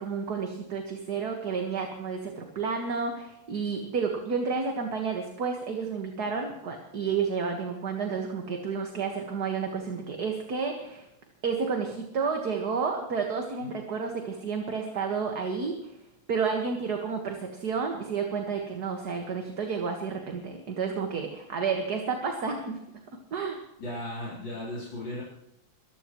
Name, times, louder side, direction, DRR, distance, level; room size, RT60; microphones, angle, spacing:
voice 1, 0.0-11.1 11.4-15.9 16.3-22.8 23.3-23.6, right 5 dB, 50° right, 3 dB, 2.1 m, -31 dB
voice 2, 23.8-25.2, left 1 dB, 60° left, -6 dB, 4.6 m, -36 dB
23.0 x 15.0 x 3.1 m, 0.84 s
omnidirectional pair, 2.3 m